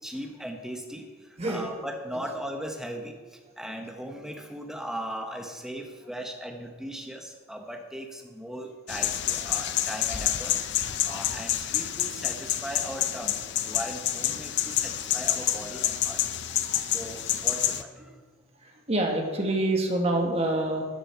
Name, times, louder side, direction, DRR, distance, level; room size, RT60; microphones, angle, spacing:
voice 1, 0.0-10.6 11.0-13.4 13.6-16.2 16.9-18.2, equal, ahead, 3 dB, 1.1 m, -38 dB
voice 2, 1.4-1.7 16.7-16.8 18.6-20.9, right 1 dB, 25° right, 2 dB, 1.5 m, -26 dB
sound 1, 8.9-17.8, left 12 dB, 50° left, 0.6 m, -28 dB
13.0 x 9.5 x 4.5 m, 1.4 s
head